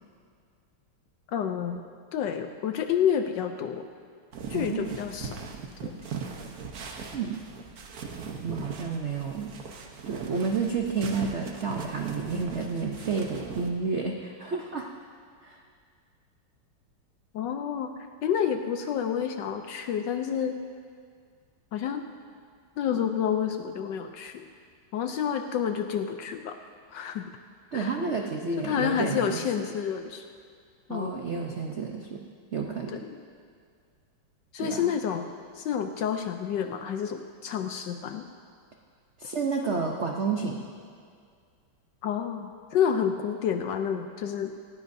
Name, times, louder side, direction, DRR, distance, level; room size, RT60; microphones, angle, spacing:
voice 1, 1.3-1.8 2.1-3.9 4.5-5.4 5.8-5.9 17.3-17.9 18.2-20.6 21.7-22.0 22.8-24.4 24.9-26.6 26.9-27.3 27.7-28.0 28.6-30.2 30.9-31.2 32.9-33.2 34.5-38.3 42.0-44.7, left 8 dB, 75° left, 7 dB, 1.1 m, -29 dB
sound 1, 4.3-13.7, right 5 dB, 55° right, 1.2 m, -39 dB
voice 2, 4.5-4.9 7.1-7.4 8.4-9.5 10.1-14.9 15.4-15.6 27.7-29.4 30.9-32.2 32.5-33.0 34.6-34.9 39.2-40.7, right 4 dB, 70° right, 1 dB, 0.6 m, -30 dB
18.5 x 16.0 x 2.7 m, 2.2 s
omnidirectional pair, 2.3 m